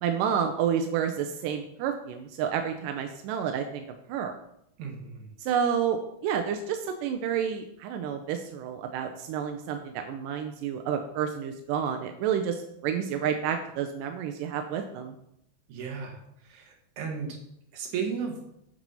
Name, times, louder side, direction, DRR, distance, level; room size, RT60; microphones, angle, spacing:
voice 1, 0.0-3.8 4.1-4.3 5.4-15.1, right 8 dB, 80° right, 5 dB, 2.0 m, -30 dB
voice 2, 4.8-5.2 15.7-16.2 16.5-17.4 17.7-18.3, right 6 dB, 60° right, 1 dB, 2.6 m, -34 dB
7.5 x 6.0 x 5.5 m, 0.78 s
omnidirectional pair, 4.4 m